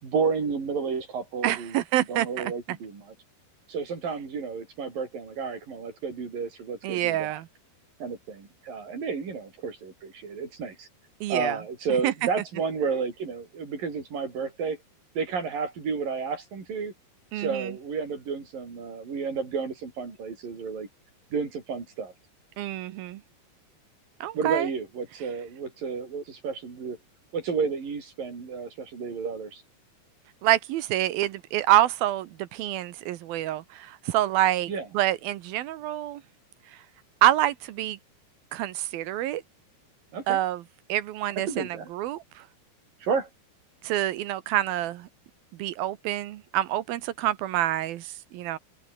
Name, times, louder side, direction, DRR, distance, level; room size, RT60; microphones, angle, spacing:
voice 1, 0.0-1.8 2.1-3.1 3.7-7.4 8.0-10.9 11.3-14.8 15.2-16.9 17.3-20.9 21.3-22.1 24.3-27.0 27.3-29.6 34.7-34.9 40.1-40.4 41.5-41.9 43.0-43.3, right 5 dB, 50° right, 7.2 m, -31 dB
voice 2, 1.4-2.5 6.8-7.5 11.2-11.6 12.0-12.1 17.3-17.7 22.6-23.2 24.2-24.7 30.4-36.2 37.2-38.0 38.5-39.4 40.3-40.6 40.9-42.2 43.8-45.1 45.6-48.6, right 14 dB, 70° right, 2.4 m, -27 dB
open air
omnidirectional pair, 5.1 m